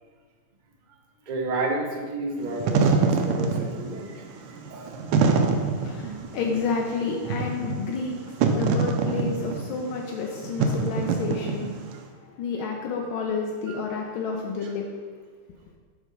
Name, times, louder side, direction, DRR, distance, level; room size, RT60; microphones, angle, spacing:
voice 1, 1.3-5.0 5.4-5.5 13.7-13.8 14.6-14.7, right 2 dB, 40° right, -1 dB, 0.6 m, -32 dB
Wind / Fire, 2.4-12.0, right 4 dB, 90° right, 1.6 m, -25 dB
voice 2, 5.4-15.0, left 4 dB, 75° left, 1 dB, 1.5 m, -30 dB
8.4 x 3.7 x 5.2 m, 1.5 s
omnidirectional pair, 2.3 m